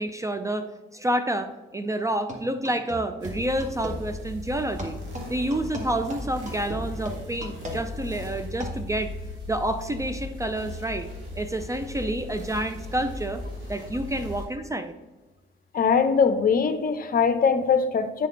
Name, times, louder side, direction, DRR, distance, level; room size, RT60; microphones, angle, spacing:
voice 1, 0.0-5.0 5.3-9.2 9.5-11.1 11.4-13.4 13.7-14.9, right 1 dB, 15° right, 9 dB, 0.5 m, -29 dB
sound 1, 2.3-4.0 4.8-8.9, equal, 35° right, 1.8 m, -37 dB
sound 2, 3.2-14.5, left 2 dB, 80° right, 2.2 m, -37 dB
voice 2, 15.7-18.3, left 6 dB, 45° left, 9 dB, 0.8 m, -21 dB
9.2 x 4.3 x 3.8 m, 1.2 s
cardioid pair, 90°, 20 cm